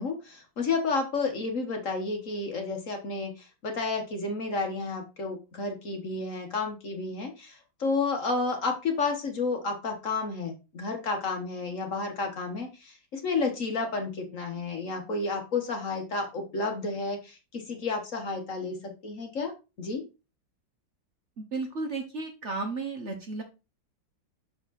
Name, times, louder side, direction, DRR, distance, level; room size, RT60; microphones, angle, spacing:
voice 1, 0.0-19.5 19.8-20.0, left 3 dB, 50° left, 3 dB, 1.5 m, -31 dB
voice 2, 21.4-23.4, right 3 dB, 45° right, 3 dB, 1.1 m, -33 dB
6.7 x 5.0 x 4.0 m, 0.29 s
omnidirectional pair, 2.0 m